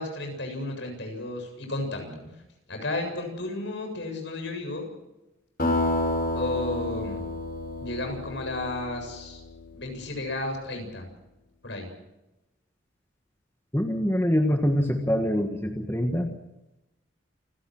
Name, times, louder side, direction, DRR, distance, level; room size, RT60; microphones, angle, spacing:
voice 1, 0.0-2.1 2.7-4.9 6.3-7.3 7.8-9.4 9.7-11.1 11.6-11.9, left 2 dB, 65° left, 4 dB, 7.4 m, -33 dB
sound 1, 5.6-9.9, left 1 dB, 45° left, 6.3 m, -30 dB
voice 2, 13.7-16.3, equal, 10° left, 3 dB, 1.6 m, -24 dB
28.5 x 17.5 x 6.3 m, 0.96 s
head